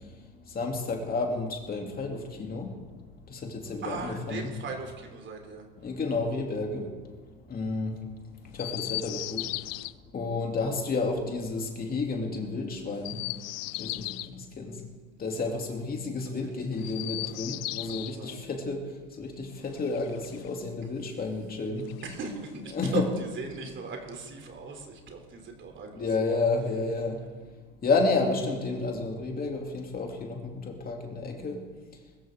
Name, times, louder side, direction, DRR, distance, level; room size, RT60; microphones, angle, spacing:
voice 1, 0.0-2.8 3.3-4.5 5.8-7.0 7.5-8.0 8.4-9.5 10.1-13.2 13.8-14.8 15.2-21.9 22.7-23.0 25.9-27.2 27.8-31.7, left 3 dB, 30° left, 1 dB, 2.9 m, -31 dB
voice 2, 3.8-5.6 16.7-17.4 17.9-18.4 22.0-26.3, right 4 dB, 40° right, 3 dB, 3.1 m, -38 dB
Chirp tweet, 8.5-9.9 12.9-14.3 16.7-18.2 19.6-20.7 21.8-22.7, left 20 dB, 80° left, 0.5 m, -37 dB
21.5 x 14.0 x 3.7 m, 1.4 s
supercardioid pair, 95°, 29 cm